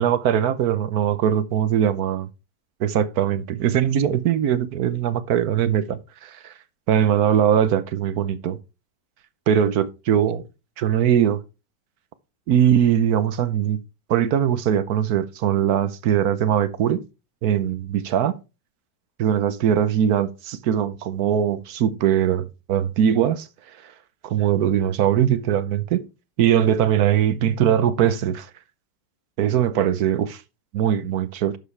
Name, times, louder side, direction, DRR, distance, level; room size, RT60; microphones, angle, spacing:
voice 1, 0.0-2.3 2.8-6.5 6.9-8.6 9.5-10.4 10.8-11.4 12.5-13.8 14.1-17.0 17.4-18.3 19.2-23.5 24.2-26.0 26.4-28.5 29.4-30.4 30.7-31.6, right 9 dB, 65° right, 1.2 m, -21 dB
11.0 x 7.3 x 3.3 m
omnidirectional pair, 1.8 m